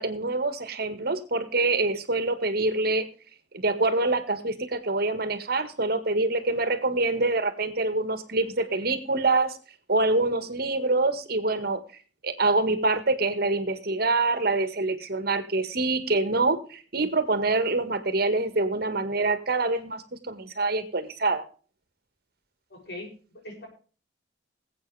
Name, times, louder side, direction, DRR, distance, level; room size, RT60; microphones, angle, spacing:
voice 1, 0.0-3.1 3.5-9.6 9.9-11.8 12.2-21.4, right 2 dB, 55° right, 11 dB, 1.7 m, -25 dB
voice 2, 22.7-23.7, left 1 dB, 65° left, 1 dB, 6.8 m, -41 dB
21.0 x 8.3 x 3.3 m, 0.38 s
head